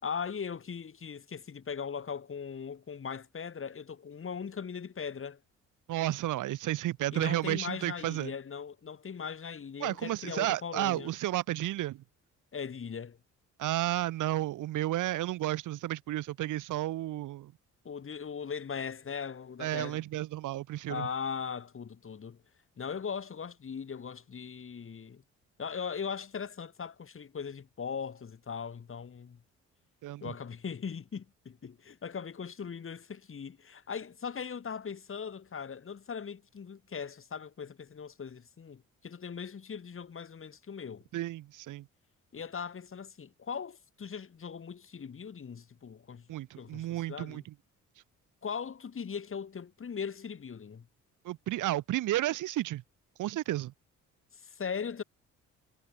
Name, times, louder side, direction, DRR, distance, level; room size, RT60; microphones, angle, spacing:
voice 1, 0.0-5.4 7.1-11.1 12.5-13.2 17.8-20.0 20.9-22.4 22.8-25.2 25.6-29.4 30.2-41.0 42.3-46.3 46.6-47.4 48.4-50.9 54.3-55.0, left 6 dB, 45° left, 7.8 m, -39 dB
voice 2, 5.9-8.3 9.8-12.0 13.6-17.5 19.6-21.1 30.0-30.3 41.1-41.9 46.3-47.5 51.2-52.8 53.2-53.7, right 15 dB, 85° right, 6.6 m, -32 dB
cardioid pair, 90°, 30 cm